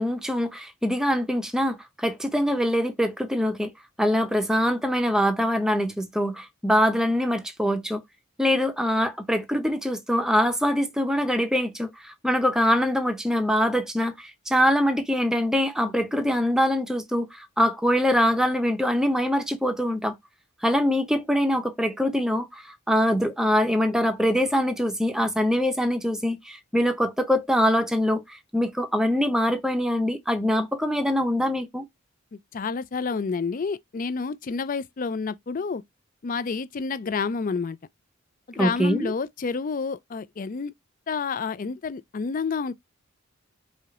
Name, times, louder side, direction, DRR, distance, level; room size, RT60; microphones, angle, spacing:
voice 1, 0.0-3.7 4.0-8.0 8.4-20.1 20.6-31.8 38.6-39.1, equal, 5° right, 0.6 m, -24 dB
voice 2, 32.3-35.8 36.2-37.8 38.5-40.7 41.1-42.7, left 5 dB, 40° left, 0.4 m, -29 dB
4.9 x 2.8 x 2.4 m
head